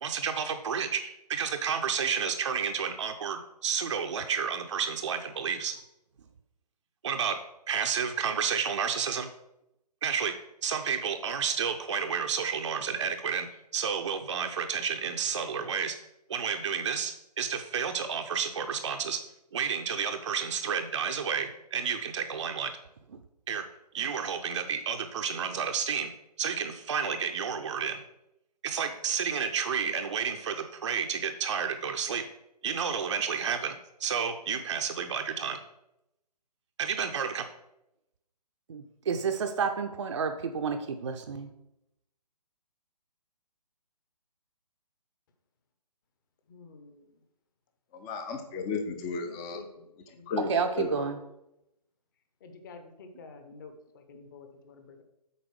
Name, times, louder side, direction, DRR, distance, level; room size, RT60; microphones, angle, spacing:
voice 1, 0.0-5.7 7.0-7.4 7.7-9.3 10.0-10.3 10.6-13.5 13.7-16.0 16.3-19.2 19.5-22.7 23.1-23.2 23.5-23.7 23.9-26.1 26.4-28.0 28.6-32.3 32.6-35.6 36.8-37.4 38.7-41.5 50.4-51.2, right 6 dB, 45° right, 5 dB, 0.6 m, -31 dB
voice 2, 46.5-47.1 49.2-50.3 52.4-55.0, left 4 dB, 30° left, 6 dB, 0.9 m, -50 dB
voice 3, 47.9-49.6 50.3-50.5 50.8-50.9, left 5 dB, 10° left, 7 dB, 0.4 m, -33 dB
8.1 x 4.2 x 6.3 m, 0.86 s
figure-of-eight pair, 140°, 21 cm